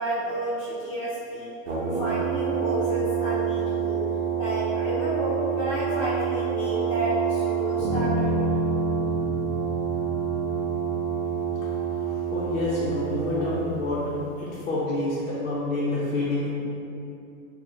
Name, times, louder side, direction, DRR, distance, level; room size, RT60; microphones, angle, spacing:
voice 1, 0.0-1.5 1.9-4.0 4.3-8.4, right 1 dB, 15° left, -15 dB, 0.6 m, -31 dB
Brass instrument, 1.7-13.9, right 8 dB, 60° right, 0.8 m, -28 dB
Bass guitar, 7.8-12.2, left 1 dB, 10° right, 1.3 m, -30 dB
voice 2, 11.6-16.5, left 2 dB, 60° left, -9 dB, 0.8 m, -28 dB
4.3 x 2.3 x 2.6 m, 2.7 s
hypercardioid pair, 160°, 41 cm